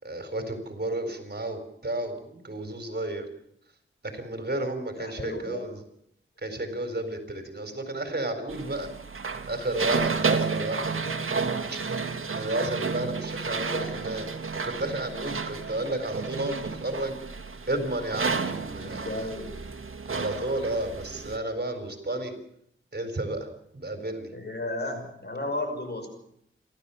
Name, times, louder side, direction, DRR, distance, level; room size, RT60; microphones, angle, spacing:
voice 1, 0.0-3.3 4.0-5.8 6.4-8.9 9.5-11.0 11.7-11.8 12.3-14.3 14.6-17.2 17.7-19.3 20.0-22.3 22.9-23.5 23.7-24.3, right 1 dB, 50° right, 7 dB, 4.3 m, -32 dB
voice 2, 5.0-5.7 10.4-11.3 13.5-14.0 18.8-19.6 24.3-26.1, left 2 dB, 50° left, 5 dB, 6.0 m, -35 dB
sound 1, 8.5-21.4, right 5 dB, 80° right, 1.8 m, -31 dB
29.0 x 13.0 x 7.1 m, 0.72 s
wide cardioid pair, 65°, 21 cm